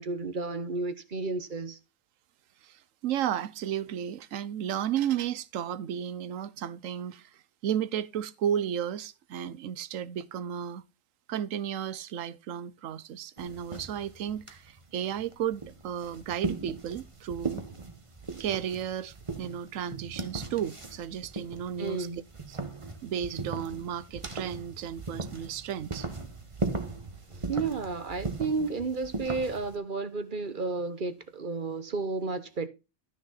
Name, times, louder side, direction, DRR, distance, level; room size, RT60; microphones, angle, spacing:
voice 1, 0.0-1.8 21.8-22.2 27.3-32.7, right 3 dB, 45° right, 1.0 m, -32 dB
voice 2, 2.6-10.8 11.3-17.6 18.4-22.1 22.5-22.6 23.0-26.1, right 9 dB, 85° right, 1.1 m, -33 dB
sound 1, 13.4-29.8, right 3 dB, 25° right, 1.2 m, -38 dB
13.0 x 6.3 x 4.0 m
omnidirectional pair, 1.3 m